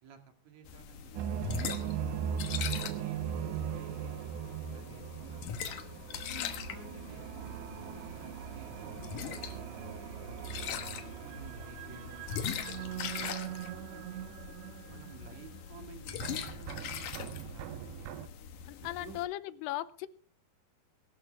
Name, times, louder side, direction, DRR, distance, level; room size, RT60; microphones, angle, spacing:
voice 1, 0.4-4.2 4.7-5.8 6.6-9.7 10.3-10.6 10.9-14.4 14.9-18.2 18.8-19.2, right 6 dB, 50° right, 5 dB, 3.1 m, -54 dB
sound 1, 0.7-19.2, left 8 dB, 65° left, 2.4 m, -42 dB
sound 2, 1.2-15.9 16.2-18.3, right 10 dB, 90° right, 3.1 m, -40 dB
voice 2, 18.7-20.1, left 15 dB, 80° left, 16 dB, 2.8 m, -38 dB
22.0 x 12.0 x 3.5 m, 0.41 s
omnidirectional pair, 4.9 m